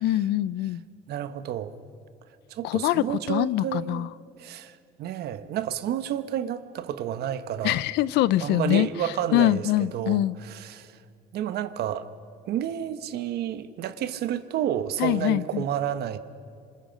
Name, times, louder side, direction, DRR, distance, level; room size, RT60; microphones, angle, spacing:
voice 1, 0.0-0.8 2.6-4.1 7.6-8.9 9.3-10.4 15.0-15.7, left 14 dB, 80° left, 0.5 m, -24 dB
voice 2, 1.1-1.8 2.5-4.1 4.4-7.8 8.4-10.9 11.3-12.1 12.5-16.2, right 10 dB, 70° right, 1.1 m, -30 dB
28.0 x 26.5 x 5.2 m
cardioid pair, 110°, 17 cm